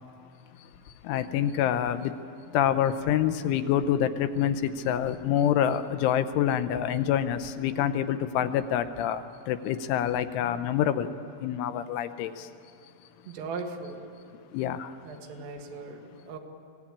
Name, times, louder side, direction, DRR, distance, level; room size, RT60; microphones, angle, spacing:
voice 1, 0.6-11.1 11.4-12.5 13.2-13.3 14.5-15.0 15.3-15.4, left 10 dB, 80° left, 3.1 m, -27 dB
voice 2, 13.3-14.1 15.1-16.4, right 4 dB, 85° right, 4.3 m, -38 dB
24.5 x 18.0 x 8.7 m
omnidirectional pair, 5.7 m